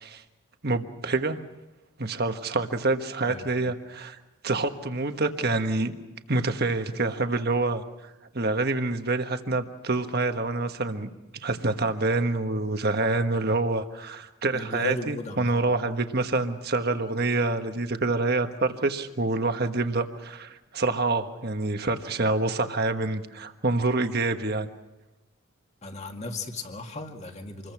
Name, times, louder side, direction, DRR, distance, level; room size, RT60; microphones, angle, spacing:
voice 1, 0.6-1.4 2.0-4.2 4.4-5.9 6.3-7.8 8.3-11.1 11.4-24.7, right 2 dB, 45° right, 7 dB, 1.4 m, -27 dB
voice 2, 3.3-3.7 14.5-15.5 25.8-27.7, left 2 dB, 30° left, 4 dB, 2.1 m, -36 dB
27.0 x 22.0 x 6.1 m, 1.0 s
head